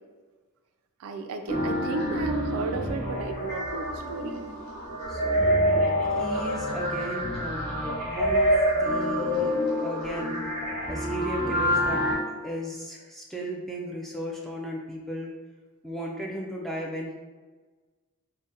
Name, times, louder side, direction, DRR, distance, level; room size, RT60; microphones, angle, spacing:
voice 1, 1.0-4.4 5.8-5.9, right 3 dB, 80° right, 7 dB, 0.3 m, -34 dB
sound 1, 1.5-12.1, equal, 50° left, 1.1 m, -27 dB
voice 2, 5.1-5.9 6.2-10.3 10.9-15.3 15.8-17.1, equal, ahead, -2 dB, 0.3 m, -36 dB
3.6 x 2.1 x 2.7 m, 1.3 s
head